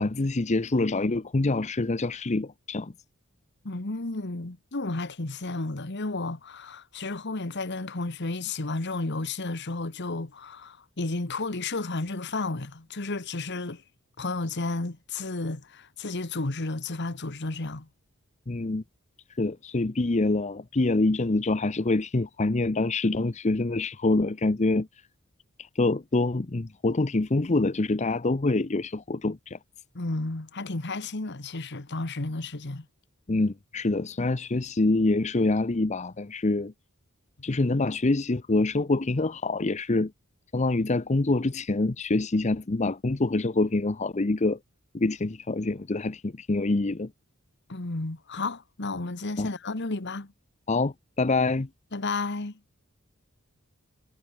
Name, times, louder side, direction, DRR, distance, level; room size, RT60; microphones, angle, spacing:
voice 1, 0.0-2.9 18.5-18.8 19.3-24.9 25.6-29.6 33.3-36.7 37.4-40.1 40.5-44.6 44.9-47.1 49.4-49.5 50.7-51.7, left 2 dB, 30° left, 0.7 m, -26 dB
voice 2, 3.6-13.8 14.2-17.9 29.9-32.9 37.5-37.6 47.7-50.3 51.9-52.6, left 2 dB, 55° left, 1.5 m, -32 dB
head